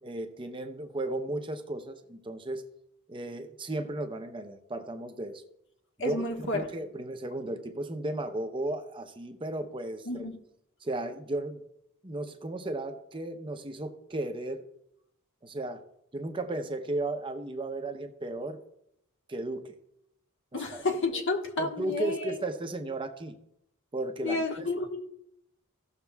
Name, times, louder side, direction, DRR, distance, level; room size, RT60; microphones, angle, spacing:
voice 1, 0.0-2.7 3.1-5.4 6.0-10.3 10.8-11.6 12.0-14.6 15.4-15.8 16.1-18.6 19.3-19.7 20.7-20.8 21.1-21.2 21.6-23.4 23.9-24.7, right 2 dB, 25° right, 0.7 m, -35 dB
voice 2, 6.0-6.7 10.1-10.4 20.5-22.4 24.2-25.0, left 2 dB, 60° left, 1.4 m, -31 dB
16.5 x 6.6 x 2.3 m
head